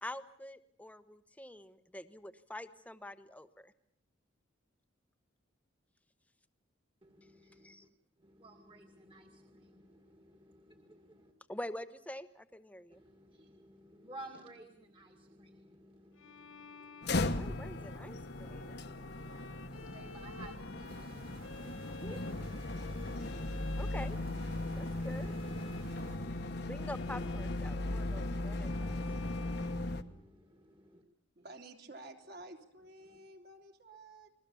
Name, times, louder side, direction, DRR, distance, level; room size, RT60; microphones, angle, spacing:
voice 1, 0.0-3.7 7.6-7.8 11.5-13.0 17.3-18.7 22.0-22.3 23.8-24.2 24.8-25.4 26.7-29.0, left 1 dB, 5° left, 1.1 m, -46 dB
voice 2, 7.0-7.7 8.2-11.3 12.9-17.5 18.5-23.6 25.6-26.3 27.8-31.0 33.1-33.2, right 1 dB, 25° right, 2.1 m, -56 dB
Bowed string instrument, 16.2-30.4, left 4 dB, 80° left, 1.1 m, -53 dB
sound 1, 17.0-30.0, left 2 dB, 55° left, 1.3 m, -37 dB
sound 2, 20.9-26.2, right 3 dB, 75° right, 6.0 m, -57 dB
voice 3, 31.3-34.3, right 2 dB, 50° right, 3.1 m, -51 dB
29.5 x 21.5 x 7.1 m
head